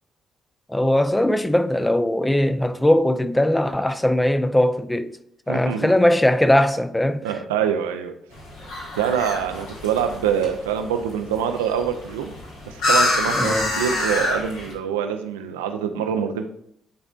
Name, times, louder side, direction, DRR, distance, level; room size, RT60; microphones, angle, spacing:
voice 1, 0.7-5.2 5.5-7.3 13.3-13.7, left 1 dB, 10° left, 0.5 m, -20 dB
voice 2, 5.5-5.9 7.2-8.1 9.0-12.4 12.6-16.5, right 8 dB, 75° right, 0.5 m, -25 dB
sound 1, 8.3-14.7, left 2 dB, 65° left, 1.6 m, -27 dB
10.0 x 4.2 x 2.4 m
figure-of-eight pair, 40°, 0 cm